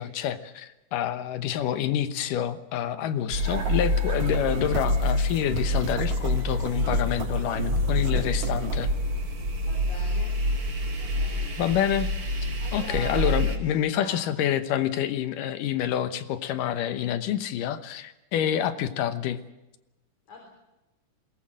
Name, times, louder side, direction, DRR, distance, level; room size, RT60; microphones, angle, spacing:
voice 1, 0.0-8.9 11.6-12.1 12.7-19.4, left 10 dB, 80° left, 11 dB, 2.7 m, -27 dB
sound 1, 3.3-13.6, left 1 dB, 45° right, 3.2 m, -27 dB
sound 2, 3.4-8.9, right 5 dB, 80° right, 4.2 m, -36 dB
voice 2, 9.7-10.4 11.0-11.8 12.6-14.3 20.3-20.5, left 3 dB, 60° left, 0 dB, 4.8 m, -44 dB
21.5 x 19.0 x 7.6 m, 0.99 s
omnidirectional pair, 3.8 m